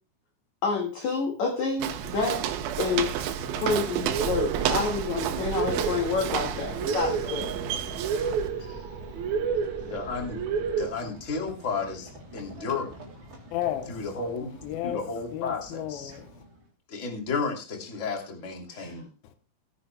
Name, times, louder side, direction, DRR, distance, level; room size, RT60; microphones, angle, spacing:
voice 1, 0.6-2.4 2.8-7.6 7.9-8.0 18.7-19.0, left 4 dB, 50° left, 2.6 m, -29 dB
Walk footsteps, 1.8-8.5, right 9 dB, 85° right, 3.5 m, -31 dB
Run / Train, 2.3-16.7, right 1 dB, 25° right, 3.9 m, -48 dB
sound 1, 4.0-10.9, right 6 dB, 60° right, 2.0 m, -31 dB
voice 2, 9.8-10.5 10.8-13.0 13.9-14.5 14.8-16.1 16.9-19.1, left 4 dB, 20° left, 2.0 m, -33 dB
voice 3, 13.5-14.0 14.6-16.4 19.2-19.3, left 12 dB, 80° left, 2.2 m, -33 dB
20.5 x 10.0 x 2.2 m
omnidirectional pair, 5.4 m